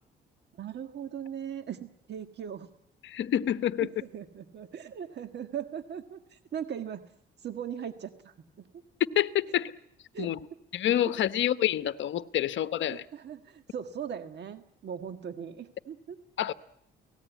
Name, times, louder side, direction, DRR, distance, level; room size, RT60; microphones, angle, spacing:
voice 1, 0.6-2.7 3.8-7.0 7.4-8.3 10.1-10.3 12.9-16.2, right 8 dB, 60° right, 1.7 m, -39 dB
voice 2, 3.0-3.9 9.2-9.7 10.2-10.4 10.7-13.0 16.4-16.5, left 11 dB, 70° left, 1.1 m, -27 dB
29.0 x 18.5 x 9.3 m
cardioid pair, 90°, 20 cm